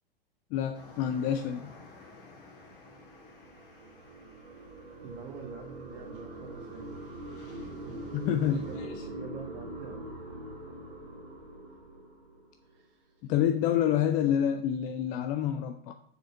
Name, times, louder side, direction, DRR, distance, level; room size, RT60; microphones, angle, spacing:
voice 1, 0.5-1.7 8.1-8.9 13.2-15.9, left 10 dB, 25° left, 7 dB, 0.4 m, -28 dB
sound 1, 0.7-8.8, left 2 dB, 60° left, 2.1 m, -53 dB
sound 2, 2.3-12.8, right 1 dB, 70° right, 1.6 m, -43 dB
voice 2, 5.0-7.0 7.9-8.2 8.5-10.1 12.6-13.3, right 5 dB, 40° right, -1 dB, 1.4 m, -47 dB
6.6 x 4.9 x 5.5 m, 0.66 s
figure-of-eight pair, 95°, 30 cm